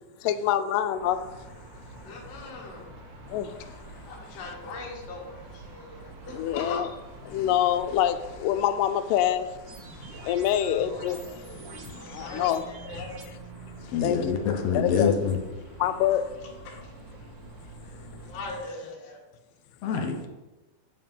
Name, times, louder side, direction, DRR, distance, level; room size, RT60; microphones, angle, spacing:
voice 1, 0.2-1.2 3.3-3.7 6.4-6.9 7.3-9.5 10.2-11.2 11.8-12.6 13.0-13.1 13.8-14.4 14.7-15.1 15.8-16.3, left 11 dB, 90° left, 2.2 m, -26 dB
sound 1, 0.9-18.6, right 2 dB, 50° right, 1.4 m, -46 dB
voice 2, 2.0-3.0 4.1-7.6 11.9-13.1 16.1-16.2 16.6-16.9 17.2-17.3 18.2-19.2 20.1-20.3, left 3 dB, 55° left, 2.5 m, -40 dB
sound 2, 9.7-13.3, right 4 dB, 70° right, 2.3 m, -46 dB
voice 3, 13.9-15.4 19.8-20.3, left 6 dB, 70° left, 1.6 m, -26 dB
7.6 x 5.6 x 5.4 m
omnidirectional pair, 3.8 m